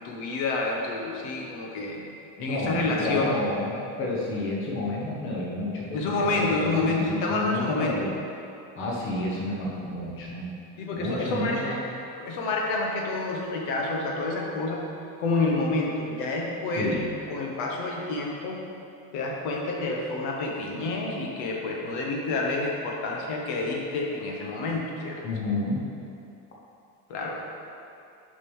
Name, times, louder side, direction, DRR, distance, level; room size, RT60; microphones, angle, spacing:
voice 1, 0.0-2.0 2.4-3.3 5.9-8.0 10.8-11.8 12.2-14.8 15.2-16.9 17.3-18.6 19.1-25.2 27.1-27.4, left 2 dB, 65° left, -1 dB, 1.3 m, -28 dB
voice 2, 2.4-8.1 8.8-10.5 10.9-11.8 16.7-17.1 25.2-25.8, left 2 dB, 30° left, -4 dB, 1.1 m, -30 dB
6.6 x 5.4 x 6.3 m, 2.6 s
cardioid pair, 175°, 40 cm